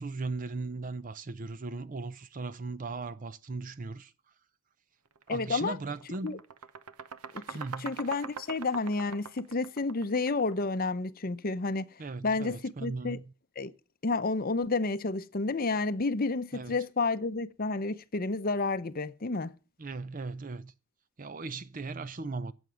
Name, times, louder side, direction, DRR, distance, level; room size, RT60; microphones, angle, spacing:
voice 1, 0.0-4.1 5.3-6.4 7.5-7.9 12.0-13.2 16.5-16.8 19.8-20.7 21.2-22.5, right 3 dB, 35° right, 0.6 m, -38 dB
sound 1, 5.1-5.3 5.7-10.6, right 6 dB, 85° right, 0.8 m, -43 dB
voice 2, 5.3-5.8 6.2-6.4 7.3-11.9 12.2-13.2 13.6-13.7 14.0-19.5, left 3 dB, 40° left, 0.7 m, -30 dB
14.0 x 8.0 x 7.1 m
head